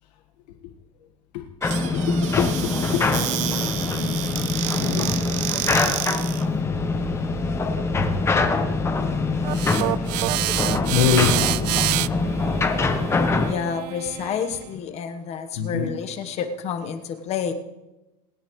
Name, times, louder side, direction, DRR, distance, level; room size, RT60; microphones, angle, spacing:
sound 1, 1.6-13.5, left 3 dB, 10° left, 0.9 m, -24 dB
Squeak / Cupboard open or close, 1.6-6.5, right 13 dB, 35° right, 0.7 m, -30 dB
voice 1, 2.1-3.0 4.8-5.2 9.8-10.1 10.8-11.5 12.2-12.3 15.6-15.9, left 8 dB, 80° left, 1.6 m, -25 dB
sound 2, 9.4-14.6, right 18 dB, 75° right, 0.4 m, -27 dB
voice 2, 13.4-17.5, left 7 dB, 30° left, 1.2 m, -29 dB
26.5 x 10.5 x 3.2 m
supercardioid pair, 155°, 21 cm